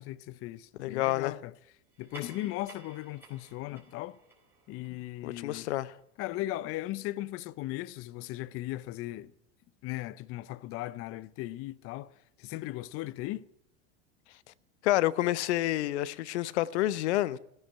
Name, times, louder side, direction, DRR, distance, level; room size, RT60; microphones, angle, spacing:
voice 1, 0.0-1.5 2.0-4.2 4.7-5.7 6.2-9.3 9.8-13.4, left 16 dB, 40° left, 0.6 m, -37 dB
voice 2, 0.8-1.3 5.2-5.9 14.8-17.4, left 15 dB, 80° left, 0.8 m, -28 dB
sound 1, 1.9-6.8, right 3 dB, 5° right, 4.3 m, -55 dB
16.0 x 10.0 x 8.7 m
supercardioid pair, 115°, 33 cm